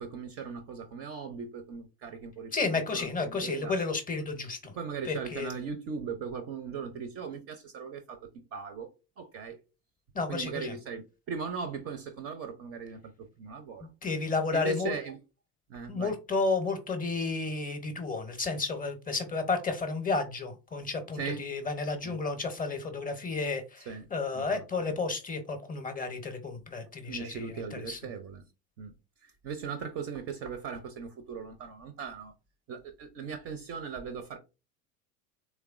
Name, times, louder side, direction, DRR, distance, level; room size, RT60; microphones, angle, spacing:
voice 1, 0.0-2.5 2.9-3.8 4.8-8.9 9.2-9.6 10.3-13.9 14.5-15.2 15.7-16.1 21.2-21.4 22.0-22.2 23.9-24.1 24.4-24.6 27.1-28.4 28.8-28.9 29.2-32.3 32.7-34.4, right 6 dB, 30° right, 0.4 m, -39 dB
voice 2, 2.5-4.7 5.0-5.6 10.1-10.8 14.0-14.9 15.9-28.0, left 3 dB, 20° left, 0.6 m, -32 dB
3.3 x 3.1 x 2.3 m
figure-of-eight pair, 75°, 48 cm